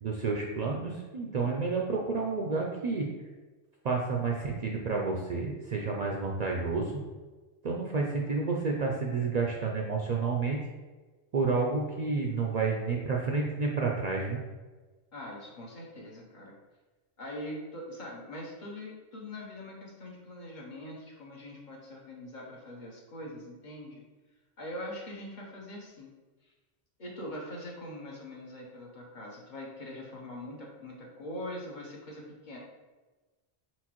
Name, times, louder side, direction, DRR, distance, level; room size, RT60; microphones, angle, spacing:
voice 1, 0.0-3.1 3.8-6.9 7.6-10.6 11.3-14.4, right 4 dB, 55° right, -1 dB, 0.5 m, -30 dB
voice 2, 15.1-16.5 17.2-24.0 24.6-26.1 27.0-32.6, left 1 dB, 50° left, -2 dB, 1.0 m, -42 dB
4.5 x 3.9 x 3.0 m, 1.3 s
omnidirectional pair, 1.1 m